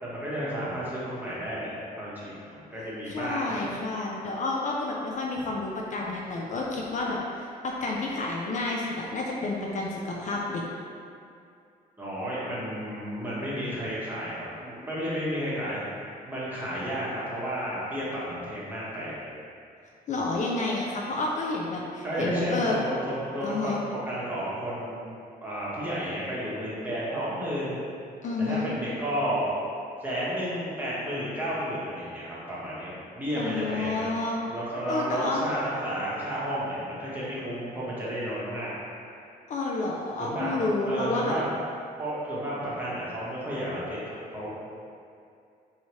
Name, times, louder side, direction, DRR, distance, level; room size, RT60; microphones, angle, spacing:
voice 1, 0.0-3.7 12.0-15.8 16.2-19.2 22.0-23.8 24.0-25.0 25.4-27.8 28.4-29.5 30.0-34.1 34.5-38.7 40.2-40.5 40.9-41.4 42.0-44.5, equal, 10° right, -9 dB, 1.1 m, -32 dB
voice 2, 3.1-10.6 20.1-22.8 23.4-23.8 28.2-28.7 33.4-34.5 34.9-35.5 39.5-41.4, left 2 dB, 50° left, -2 dB, 0.4 m, -30 dB
4.7 x 2.8 x 3.0 m, 2.5 s
cardioid pair, 125°, 17 cm